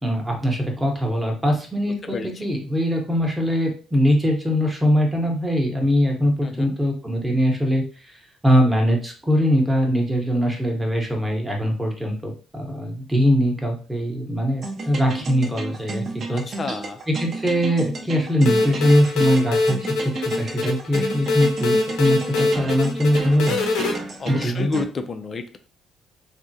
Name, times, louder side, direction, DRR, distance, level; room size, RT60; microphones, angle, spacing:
voice 1, 0.0-16.4 17.2-23.6 24.3-24.7, equal, 5° right, 0 dB, 0.9 m, -22 dB
voice 2, 6.4-6.7 16.3-17.0 24.2-25.6, left 4 dB, 30° left, 8 dB, 0.4 m, -30 dB
sound 1, 14.6-24.8, right 3 dB, 40° right, 0.6 m, -32 dB
sound 2, 18.4-23.9, left 3 dB, 85° left, 0.7 m, -23 dB
3.5 x 2.1 x 2.6 m, 0.38 s
cardioid pair, 130°, 0 cm